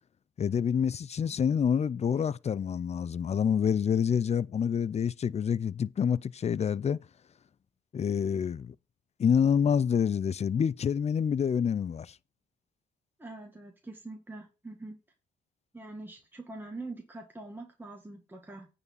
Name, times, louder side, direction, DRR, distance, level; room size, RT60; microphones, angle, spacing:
voice 1, 0.4-7.0 7.9-8.7 9.2-12.2, left 7 dB, 35° left, 0.5 m, -27 dB
voice 2, 13.2-15.0 15.7-18.7, right 2 dB, 10° right, 1.7 m, -44 dB
9.5 x 4.1 x 7.3 m
cardioid pair, 90°, 20 cm